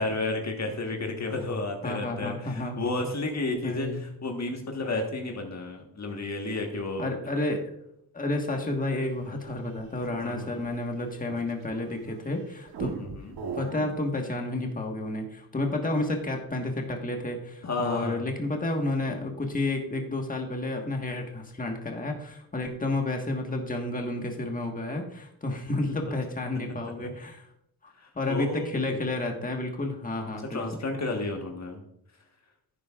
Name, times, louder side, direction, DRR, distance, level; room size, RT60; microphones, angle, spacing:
voice 1, 0.0-7.1 10.2-10.6 12.8-13.3 17.6-18.3 26.0-26.1 26.7-26.8 28.0-29.0 30.5-31.8, left 2 dB, 45° left, 2 dB, 1.5 m, -32 dB
voice 2, 1.8-2.8 3.6-4.0 7.0-7.7 8.1-12.9 13.5-27.5 27.8-30.7, left 2 dB, 20° left, 2 dB, 1.5 m, -31 dB
sound 1, 9.2-12.2 12.7-14.0, right 5 dB, 85° right, 1.2 m, -39 dB
11.5 x 9.3 x 2.4 m, 0.74 s
cardioid pair, 95°, 38 cm